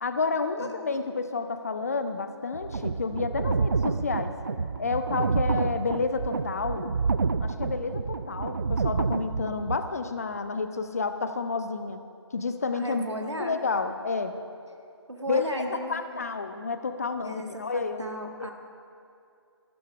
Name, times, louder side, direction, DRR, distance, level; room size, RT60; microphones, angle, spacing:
voice 1, 0.0-4.4 4.8-6.9 7.4-12.0 12.3-13.0 13.4-14.3 15.3-18.0 18.4-18.5, left 4 dB, 35° left, 9 dB, 0.6 m, -30 dB
sound 1, 2.5-9.8, right 4 dB, 45° right, 0.4 m, -28 dB
voice 2, 12.8-13.6 15.1-16.0 17.2-18.5, right 1 dB, 80° right, 3 dB, 1.8 m, -35 dB
13.5 x 12.0 x 4.9 m, 2.6 s
figure-of-eight pair, 150°, 15 cm